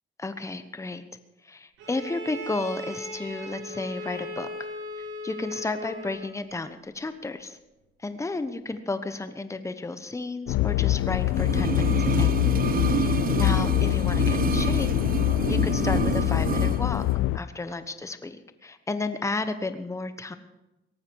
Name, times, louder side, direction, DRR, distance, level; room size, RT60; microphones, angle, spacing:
voice 1, 0.2-1.0 1.4-4.5 5.0-7.6 8.0-12.3 12.9-14.9 15.5-17.1 17.3-20.4, left 3 dB, 15° left, 10 dB, 1.0 m, -33 dB
Bowed string instrument, 1.8-6.4, equal, 80° right, 5.8 m, -38 dB
sound 1, 10.5-17.4, left 17 dB, 85° left, 0.4 m, -24 dB
sound 2, 11.3-16.8 17.1-17.2, right 8 dB, 45° right, 0.7 m, -28 dB
18.0 x 14.0 x 4.7 m, 0.99 s
cardioid pair, 90°, 20 cm